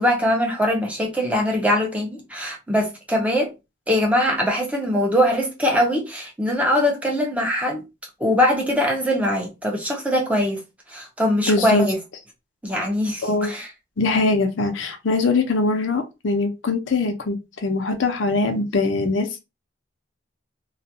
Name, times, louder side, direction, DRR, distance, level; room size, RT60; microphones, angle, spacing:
voice 1, 0.0-3.5 3.9-7.8 8.2-10.6 10.9-12.0 12.6-13.7, left 1 dB, 5° right, 0.5 m, -22 dB
voice 2, 11.5-11.8 13.2-13.5 14.0-17.4 17.6-19.4, left 3 dB, 85° left, 0.6 m, -22 dB
2.3 x 2.2 x 2.7 m
head